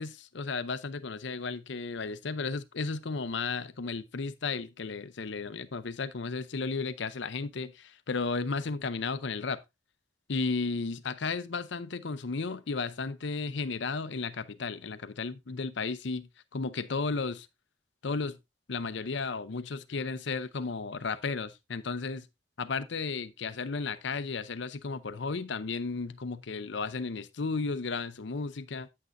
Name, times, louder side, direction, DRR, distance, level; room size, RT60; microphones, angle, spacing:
voice 1, 0.0-9.6 10.3-17.5 18.0-18.4 18.7-22.3 22.6-28.9, left 4 dB, 65° left, 0.6 m, -34 dB
9.3 x 8.7 x 2.6 m
head